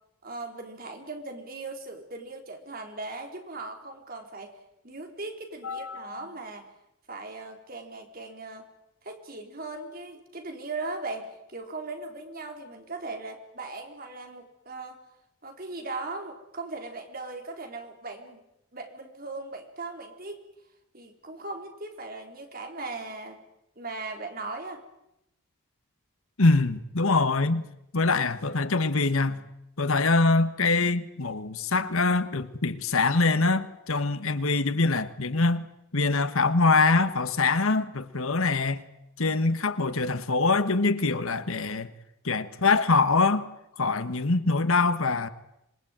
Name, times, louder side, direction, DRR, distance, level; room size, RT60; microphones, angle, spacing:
voice 1, 0.2-4.6 4.8-6.7 7.1-8.6 9.0-15.0 15.4-18.4 18.7-20.5 20.9-23.4 23.8-24.8, right 3 dB, 40° right, 4 dB, 3.9 m, -38 dB
voice 2, 5.6-6.3 26.4-27.6 27.9-29.4 29.8-35.7 35.9-38.8 39.2-41.9 42.2-43.5 43.8-45.3, left 3 dB, 75° left, 12 dB, 1.5 m, -24 dB
26.5 x 21.0 x 9.0 m, 0.84 s
head